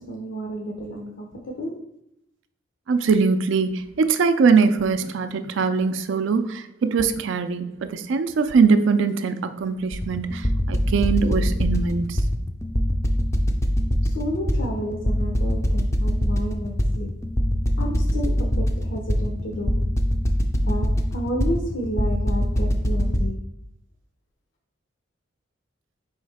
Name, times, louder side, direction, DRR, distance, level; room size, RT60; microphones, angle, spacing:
voice 1, 0.0-1.9 14.0-17.2 17.8-19.9 20.6-23.5, equal, 70° left, 0.6 m, -31 dB
voice 2, 2.9-12.2, right 5 dB, 70° right, 0.4 m, -22 dB
sound 1, 9.9-23.2, equal, 15° left, 0.3 m, -23 dB
4.6 x 3.1 x 3.4 m
head